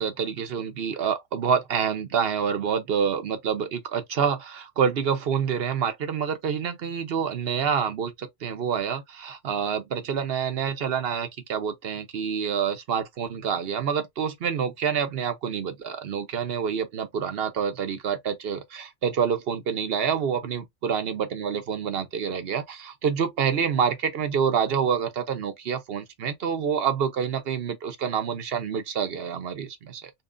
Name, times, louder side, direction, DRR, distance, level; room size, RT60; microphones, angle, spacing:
voice 1, 0.0-30.1, right 7 dB, 55° right, 0.9 m, -27 dB
4.1 x 3.0 x 2.5 m
omnidirectional pair, 1.4 m